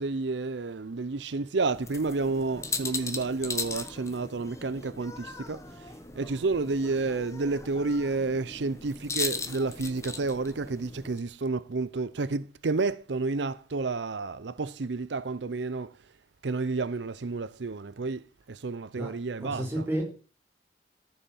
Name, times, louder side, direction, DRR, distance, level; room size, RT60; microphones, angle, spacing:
voice 1, 0.0-16.0 16.4-19.9, right 3 dB, 80° right, 0.6 m, -30 dB
sound 1, 1.7-11.2, left 3 dB, 15° left, 1.2 m, -38 dB
voice 2, 19.4-20.1, right 1 dB, 15° right, 5.2 m, -31 dB
14.5 x 8.0 x 7.1 m
head